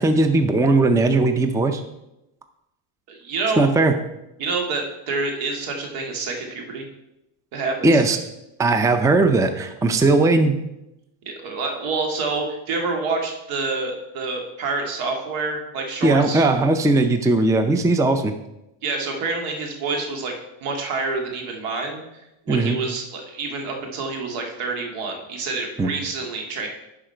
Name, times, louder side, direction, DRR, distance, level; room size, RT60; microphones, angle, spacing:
voice 1, 0.0-1.8 3.6-3.9 7.8-8.2 8.6-10.6 16.0-18.3 22.5-22.8 25.8-25.9, right 2 dB, 5° right, 8 dB, 0.5 m, -18 dB
voice 2, 3.1-3.7 4.4-6.9 7.5-8.0 11.3-16.4 18.8-20.3 20.6-22.0 22.5-26.7, right 3 dB, 80° right, 2 dB, 2.1 m, -27 dB
11.0 x 4.9 x 4.5 m, 0.90 s
cardioid pair, 115°, 50 cm